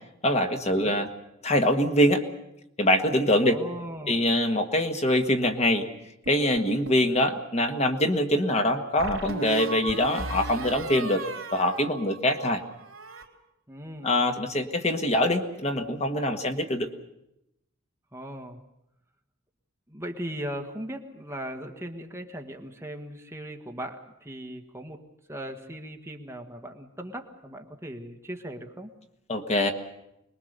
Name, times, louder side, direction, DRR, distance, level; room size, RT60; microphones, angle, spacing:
voice 1, 0.2-1.1 1.4-2.2 2.8-3.6 4.1-5.9 6.3-11.2 11.5-12.6 14.0-16.9 29.3-29.7, left 1 dB, 35° left, 5 dB, 1.6 m, -24 dB
voice 2, 3.4-4.2 13.7-14.1 18.1-18.6 19.9-25.0 25.3-28.9, equal, 15° right, 3 dB, 1.5 m, -38 dB
sound 1, 6.3-7.1 9.0-12.5 12.8-13.3, right 3 dB, 70° right, 3.4 m, -36 dB
25.5 x 21.0 x 6.7 m, 0.84 s
head